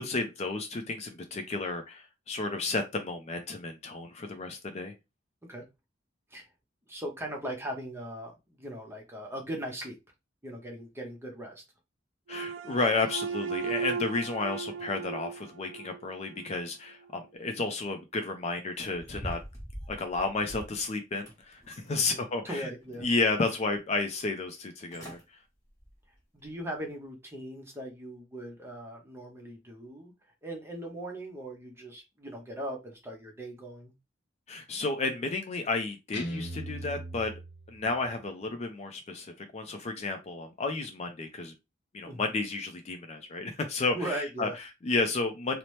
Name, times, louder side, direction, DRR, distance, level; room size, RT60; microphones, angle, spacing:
voice 1, 0.0-4.9 12.3-19.4 19.9-22.7 23.0-25.2 34.5-37.3 37.7-41.5 41.9-45.6, left 3 dB, 35° left, 0.4 m, -32 dB
voice 2, 6.9-10.0 10.4-11.6 22.0-23.1 26.3-30.1 30.4-33.9 42.1-42.2 43.9-44.5, right 1 dB, 15° right, 0.7 m, -39 dB
sound 1, 12.3-16.6, right 6 dB, 80° right, 0.3 m, -36 dB
sound 2, 18.8-20.8 21.3-22.1 22.5-23.3 23.7-23.8 24.6-24.7 24.9-25.2 25.7-25.9 26.4-26.5, equal, 15° left, 1.1 m, -44 dB
Guitar, 36.1-38.2, right 1 dB, 60° left, 0.7 m, -39 dB
2.8 x 2.0 x 3.1 m
head